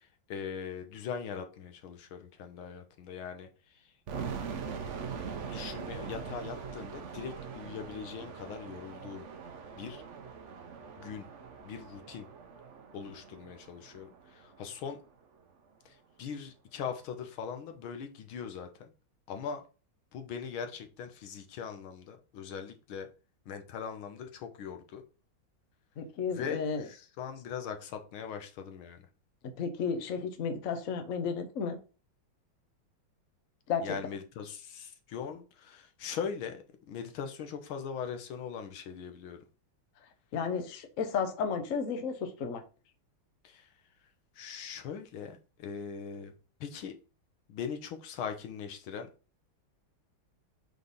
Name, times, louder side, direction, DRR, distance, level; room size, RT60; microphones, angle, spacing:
voice 1, 0.3-3.5 5.5-9.2 9.7-10.0 11.0-11.2 11.6-12.3 12.9-15.0 15.8-18.9 19.3-19.6 20.1-23.1 23.5-25.0 26.3-29.0 33.8-39.4 43.4-43.7 44.4-46.3 46.6-46.9 47.5-49.1, left 7 dB, 75° left, 1.7 m, -40 dB
sound 1, 4.1-14.9, right 6 dB, 60° right, 0.7 m, -42 dB
voice 2, 26.0-26.9 29.6-31.8 33.7-34.0 40.3-42.6, left 6 dB, 50° left, 1.0 m, -33 dB
5.1 x 4.1 x 5.4 m
omnidirectional pair, 2.3 m